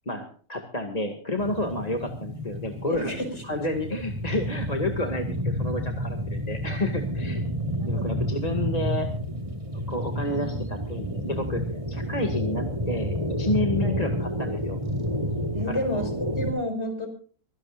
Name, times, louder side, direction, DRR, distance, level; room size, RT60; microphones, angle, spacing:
voice 1, 0.1-3.1 3.4-7.4 7.9-9.1 9.9-11.6 11.9-14.8 15.7-16.0, left 1 dB, 25° left, 4 dB, 2.2 m, -30 dB
sound 1, 1.4-16.5, equal, 20° right, 2.5 m, -30 dB
voice 2, 2.8-3.4 7.7-8.1 13.8-14.0 15.5-16.1 16.4-17.1, equal, 45° left, 5 dB, 6.0 m, -30 dB
25.0 x 17.0 x 2.5 m, 0.42 s
omnidirectional pair, 1.6 m